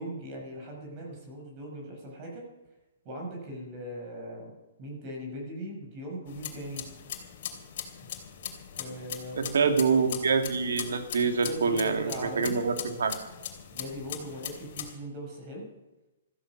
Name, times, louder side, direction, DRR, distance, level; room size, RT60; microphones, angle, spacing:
voice 1, 0.0-2.5 3.0-6.8 8.8-9.7 11.5-12.6 13.7-15.7, right 1 dB, 30° right, 0 dB, 5.9 m, -39 dB
sound 1, 6.3-14.9, left 9 dB, 50° left, 3.1 m, -40 dB
voice 2, 9.4-13.1, right 5 dB, 85° right, 6 dB, 2.4 m, -26 dB
15.0 x 14.5 x 6.1 m, 1.0 s
hypercardioid pair, 160°, 0 cm